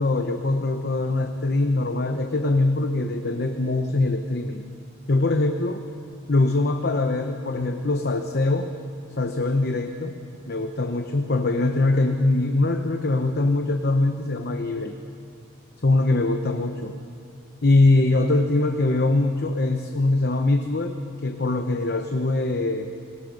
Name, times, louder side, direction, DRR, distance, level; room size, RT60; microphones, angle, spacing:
voice 1, 0.0-4.6 5.1-5.8 6.3-8.7 9.2-10.1 10.5-15.0 15.8-16.9 17.6-21.0 21.2-22.9, left 2 dB, 50° left, 6 dB, 0.9 m, -22 dB
28.5 x 19.5 x 5.3 m, 2.4 s
head